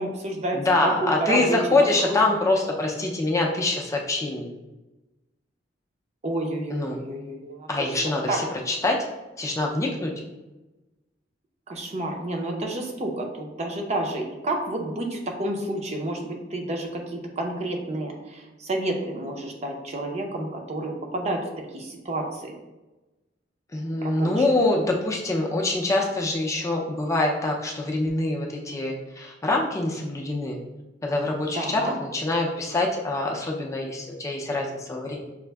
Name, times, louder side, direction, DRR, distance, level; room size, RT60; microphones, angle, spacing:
voice 1, 0.0-1.6 2.0-2.2 6.2-7.9 8.3-8.4 11.7-21.5 21.7-22.5 24.0-24.5 31.5-31.9, right 1 dB, 35° right, 2 dB, 0.5 m, -30 dB
voice 2, 0.5-4.5 6.7-7.0 7.7-9.0 9.4-10.1 23.7-30.6 31.0-35.2, left 2 dB, 15° left, -1 dB, 0.4 m, -25 dB
6.3 x 2.5 x 2.2 m, 1.1 s
head